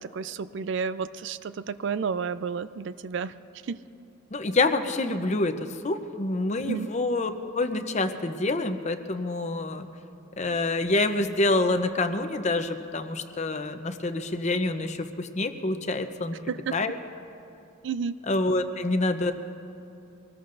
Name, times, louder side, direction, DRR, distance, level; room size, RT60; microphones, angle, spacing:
voice 1, 0.0-3.3 3.7-3.8 6.6-6.9 16.5-16.8 17.8-18.2, right 6 dB, 60° right, 14 dB, 0.4 m, -31 dB
voice 2, 4.3-9.9 10.4-16.4 16.7-16.9 18.3-19.3, left 2 dB, 35° left, 8 dB, 0.7 m, -27 dB
24.5 x 19.5 x 2.6 m, 2.7 s
head